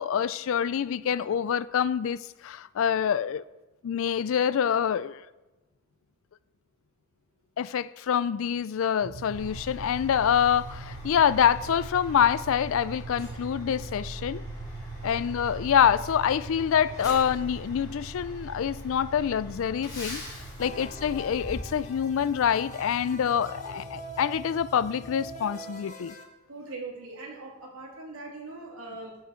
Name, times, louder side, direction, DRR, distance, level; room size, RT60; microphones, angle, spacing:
voice 1, 0.0-3.4 3.8-5.2 7.6-14.4 15.0-20.2 20.6-26.1, left 8 dB, 65° left, 0.4 m, -26 dB
sound 1, 9.0-25.4, right 4 dB, 65° right, 0.7 m, -43 dB
Truck, 9.3-22.5, left 1 dB, 20° left, 3.7 m, -43 dB
sound 2, 20.6-26.2, equal, 35° left, 1.2 m, -44 dB
voice 2, 23.0-23.8 26.5-29.2, right 3 dB, 85° right, 2.6 m, -42 dB
13.5 x 6.0 x 4.4 m
head